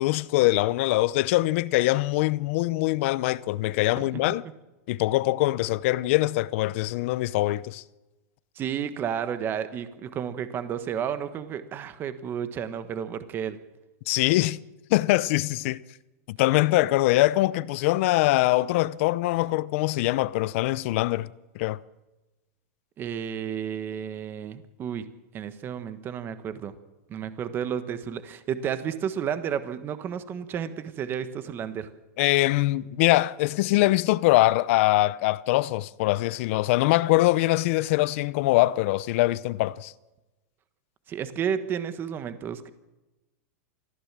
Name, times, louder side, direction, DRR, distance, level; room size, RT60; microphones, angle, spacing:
voice 1, 0.0-4.4 4.9-7.8 14.1-14.6 14.9-15.8 16.3-21.3 21.5-21.8 32.2-39.9, left 18 dB, 50° left, 0.7 m, -23 dB
voice 2, 8.5-13.6 23.0-25.0 25.3-26.7 27.1-31.9 41.1-42.7, right 8 dB, 25° right, 1.4 m, -32 dB
24.0 x 15.0 x 7.5 m
supercardioid pair, 150°, 9 cm